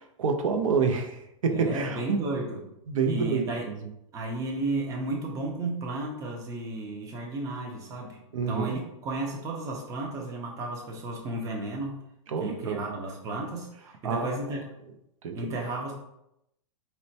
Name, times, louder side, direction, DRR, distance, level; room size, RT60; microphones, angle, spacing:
voice 1, 0.0-2.2 2.9-3.5 8.3-8.8 12.3-12.8 14.0-14.4 15.2-15.4, right 5 dB, 85° right, 5 dB, 0.6 m, -27 dB
voice 2, 1.5-2.7 3.0-3.7 4.1-8.2 8.5-12.0 12.4-14.6 15.3-15.9, right 2 dB, 20° right, 1 dB, 0.5 m, -33 dB
4.1 x 2.1 x 2.7 m, 0.80 s
supercardioid pair, 150°, 16 cm